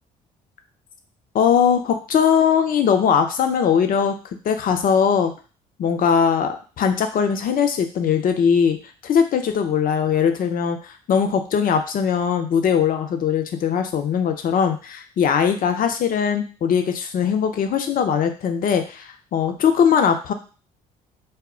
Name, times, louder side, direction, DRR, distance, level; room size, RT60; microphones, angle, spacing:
voice 1, 1.3-4.1 4.4-5.3 5.8-8.8 9.0-20.3, left 7 dB, 50° left, 6 dB, 0.5 m, -20 dB
2.1 x 2.1 x 3.6 m, 0.37 s
hypercardioid pair, 55°, 19 cm